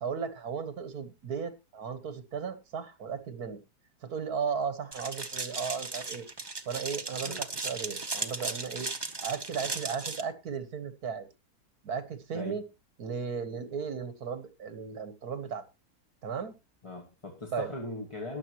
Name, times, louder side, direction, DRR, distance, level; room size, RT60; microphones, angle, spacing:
voice 1, 0.0-3.6 4.0-6.3 6.7-8.9 9.2-11.3 11.8-12.6 13.0-15.7 16.2-16.6 17.5-17.7, right 6 dB, 70° right, 11 dB, 1.9 m, -35 dB
sound 1, 4.9-10.2, right 3 dB, 20° right, 0.8 m, -36 dB
voice 2, 16.8-18.4, left 2 dB, 20° left, 2 dB, 1.6 m, -39 dB
21.0 x 7.1 x 3.0 m, 0.26 s
omnidirectional pair, 1.6 m